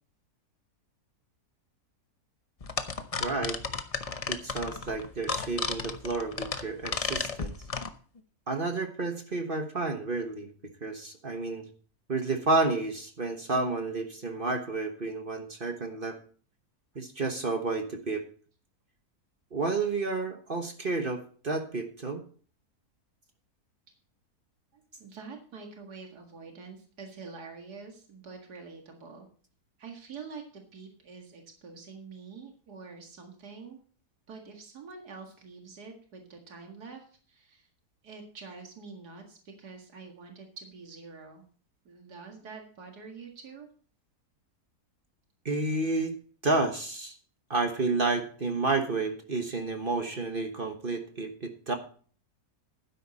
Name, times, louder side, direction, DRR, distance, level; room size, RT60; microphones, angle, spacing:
sound 1, 2.6-7.9, left 4 dB, 35° left, 0.6 m, -33 dB
voice 1, 3.2-3.6 4.3-7.6 8.5-10.5 10.8-11.7 12.1-16.2 16.9-18.3 19.5-22.2 45.4-46.2 46.4-47.1 47.5-51.7, right 3 dB, 35° right, 5 dB, 1.3 m, -30 dB
voice 2, 24.7-29.3 29.8-33.8 34.3-37.7 38.0-41.4 41.8-43.7, right 4 dB, 85° right, 2 dB, 2.5 m, -46 dB
12.0 x 10.0 x 4.2 m, 0.44 s
omnidirectional pair, 1.7 m